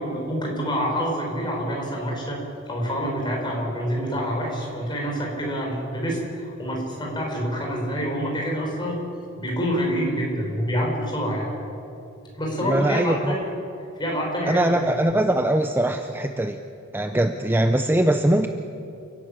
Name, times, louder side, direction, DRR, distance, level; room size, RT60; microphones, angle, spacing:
voice 1, 0.0-2.4 2.7-9.0 9.4-11.5 12.3-13.4 14.0-14.9, equal, 20° left, -1 dB, 5.5 m, -27 dB
voice 2, 12.6-13.3 14.5-16.6 16.9-18.5, right 1 dB, 10° right, 7 dB, 0.6 m, -21 dB
29.5 x 11.0 x 8.9 m, 2.7 s
head